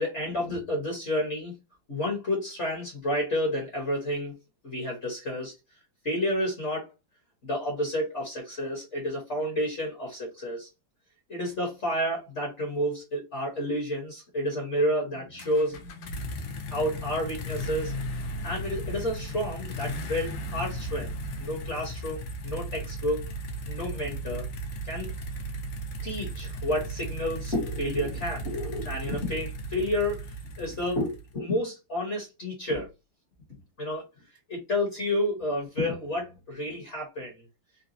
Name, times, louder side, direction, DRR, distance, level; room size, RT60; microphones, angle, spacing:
voice 1, 0.0-1.5 1.9-4.3 4.6-5.5 6.0-6.9 7.4-10.7 11.3-16.5 16.7-17.9 18.4-21.1 21.4-23.3 23.7-24.4 24.8-25.1 26.0-32.9 33.8-34.0 34.5-37.4, left 1 dB, 45° left, 1.1 m, -30 dB
sound 1, 15.4-31.4, right 1 dB, 80° left, 1.5 m, -36 dB
3.9 x 2.2 x 2.6 m
omnidirectional pair, 2.1 m